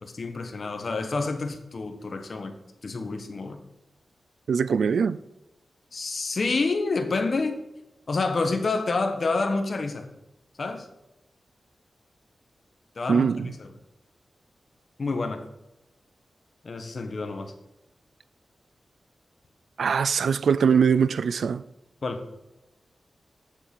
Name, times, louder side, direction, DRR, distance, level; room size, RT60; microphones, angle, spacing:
voice 1, 0.0-2.5 2.8-3.6 5.9-7.6 8.1-10.1 10.6-10.9 12.9-13.7 15.0-15.4 16.6-17.5 22.0-22.2, left 3 dB, 55° left, 1.1 m, -28 dB
voice 2, 4.5-5.2 13.1-13.5 19.8-21.6, right 6 dB, 85° right, 0.3 m, -22 dB
7.3 x 7.1 x 5.3 m
wide cardioid pair, 85°, 0 cm